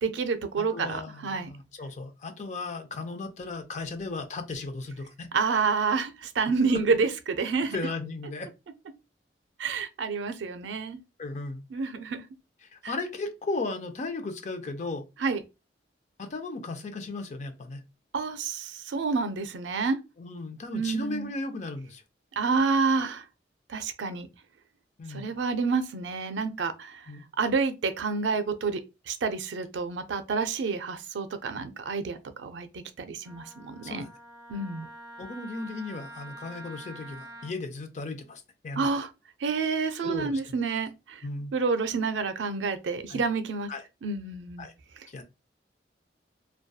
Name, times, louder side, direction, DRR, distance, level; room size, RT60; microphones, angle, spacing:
voice 1, 0.0-1.5 5.3-7.8 9.6-11.0 11.7-12.2 12.8-12.9 15.2-15.4 18.1-20.0 20.7-21.3 22.4-23.2 23.7-24.3 25.1-27.0 27.4-32.7 33.0-34.0 34.5-34.9 38.8-39.1 39.4-41.2 41.5-43.7 44.0-44.7, right 4 dB, 85° right, 0.4 m, -28 dB
voice 2, 0.6-5.3 7.7-8.5 11.2-11.6 12.7-15.1 16.2-17.8 20.2-22.0 25.0-25.2 27.1-27.2 33.8-34.1 35.2-38.9 40.0-40.6 41.2-41.5 43.1-43.2 43.7-43.8 44.6-44.7 45.1-45.2, left 3 dB, 40° left, 0.4 m, -36 dB
Wind instrument woodwind instrument, 33.2-37.5, right 1 dB, 20° right, 0.7 m, -46 dB
2.6 x 2.2 x 2.3 m
head